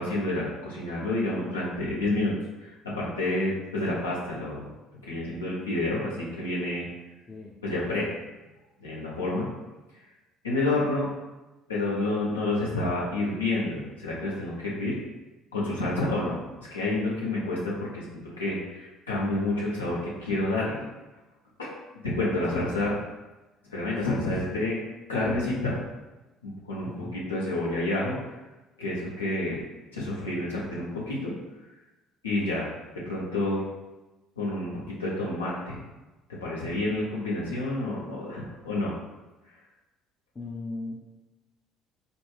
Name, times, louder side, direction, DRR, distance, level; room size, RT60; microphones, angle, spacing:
voice 1, 0.0-2.3 2.6-4.7 5.0-6.8 7.6-8.1 8.8-9.5 10.4-11.1 11.7-15.0 15.5-16.4 16.7-20.9 21.6-21.7 22.0-22.9 23.7-24.8 25.1-25.8 26.4-28.2 28.8-29.6 29.9-31.3 32.2-32.6 33.0-33.6 34.4-35.8 36.3-38.9, left 2 dB, 85° left, -6 dB, 0.9 m, -29 dB
voice 2, 24.0-24.3 26.9-27.2 40.3-41.0, left 2 dB, 25° left, -4 dB, 0.6 m, -37 dB
4.3 x 2.2 x 3.4 m, 1.1 s
figure-of-eight pair, 55°, 0 cm